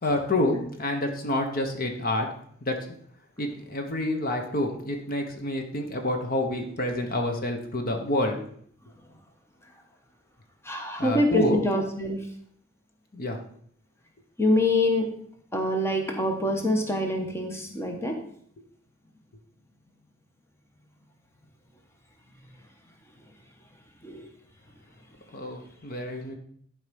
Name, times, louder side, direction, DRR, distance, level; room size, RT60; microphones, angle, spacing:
voice 1, 0.0-2.3 2.6-2.9 3.4-8.4 11.0-11.6 13.1-13.4 25.3-26.3, left 1 dB, 50° left, 4 dB, 1.2 m, -28 dB
voice 2, 10.6-12.3 14.4-15.1 15.5-18.2 24.0-24.3 25.4-25.5, left 1 dB, 15° left, 2 dB, 1.3 m, -25 dB
11.5 x 5.1 x 5.3 m, 0.63 s
head